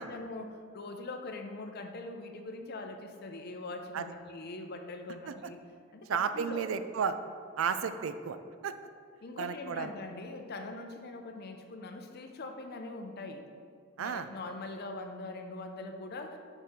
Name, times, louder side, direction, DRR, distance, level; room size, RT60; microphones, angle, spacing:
voice 1, 0.0-5.6 5.9-6.7 9.2-13.5 14.0-16.4, left 2 dB, 50° left, 5 dB, 0.6 m, -42 dB
voice 2, 6.1-7.2 7.6-8.4 8.6-8.7 9.4-9.9 14.0-14.3, right 6 dB, 85° right, 11 dB, 0.4 m, -32 dB
4.9 x 4.4 x 5.1 m, 2.1 s
head